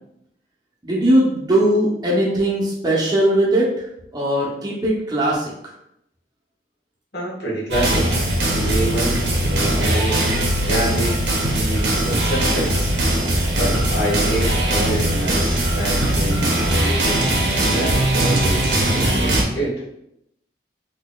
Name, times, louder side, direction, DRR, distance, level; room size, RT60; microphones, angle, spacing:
voice 1, 0.8-3.7 4.1-5.7, right 1 dB, 25° right, -4 dB, 0.7 m, -19 dB
voice 2, 7.1-8.1 8.6-10.3 10.6-11.3 11.5-12.9 13.6-17.2 17.7-19.8, right 1 dB, 60° left, -6 dB, 1.3 m, -26 dB
sound 1, 7.7-19.4, right 1 dB, 85° right, 0.8 m, -20 dB
4.0 x 2.8 x 2.3 m, 0.77 s
head